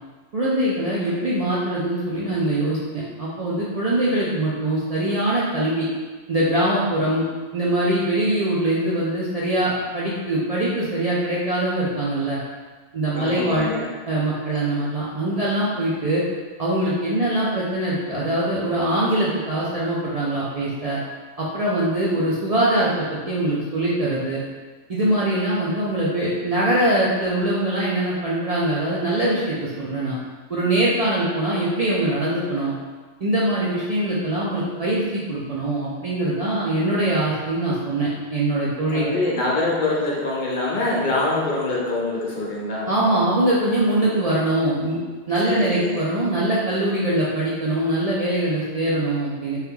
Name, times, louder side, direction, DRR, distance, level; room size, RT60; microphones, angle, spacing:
voice 1, 0.3-5.9 6.3-7.2 7.5-12.4 12.9-13.7 14.1-16.2 16.6-21.0 21.4-24.4 24.9-30.1 30.5-32.7 33.2-39.1 42.9-45.0 45.3-49.6, right 1 dB, 50° right, -7 dB, 0.4 m, -22 dB
voice 2, 13.1-13.8 38.9-42.9 45.4-46.0, left 2 dB, 55° left, -4 dB, 0.7 m, -24 dB
2.9 x 2.3 x 3.5 m, 1.3 s
omnidirectional pair, 1.1 m